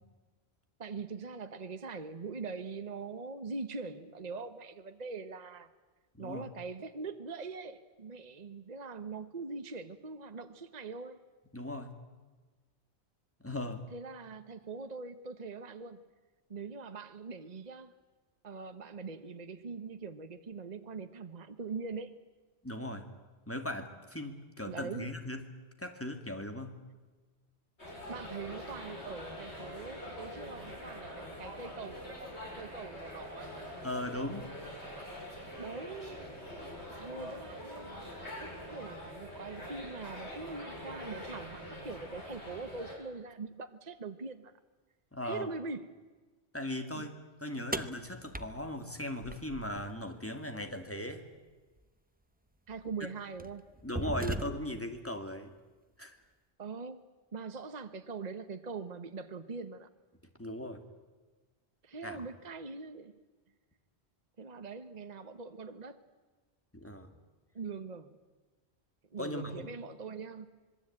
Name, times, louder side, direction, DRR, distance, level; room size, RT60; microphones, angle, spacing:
voice 1, 0.8-5.7 6.2-11.2 13.9-16.1 16.5-17.9 18.4-22.1 24.7-25.1 28.1-33.5 35.6-36.3 37.0-44.5 45.2-45.9 46.9-47.0 52.7-53.7 56.6-57.0 57.3-59.9 61.8-63.1 64.4-66.0 67.5-68.2 69.1-70.5, right 4 dB, 40° right, 9 dB, 1.2 m, -42 dB
voice 2, 11.5-11.9 13.4-13.8 22.6-23.1 23.5-25.4 25.8-26.8 33.8-34.5 45.1-45.5 46.5-51.2 53.8-55.5 56.0-56.2 60.4-60.8 62.0-62.2 66.7-67.1 69.2-69.7, left 1 dB, 10° left, 6 dB, 2.5 m, -38 dB
sound 1, 27.8-42.9, equal, 80° left, 6.9 m, -44 dB
sound 2, 47.7-49.9 51.8-51.9 52.7-52.9 53.4-54.9, right 1 dB, 10° right, 0.9 m, -38 dB
26.0 x 22.0 x 8.8 m, 1.3 s
omnidirectional pair, 1.1 m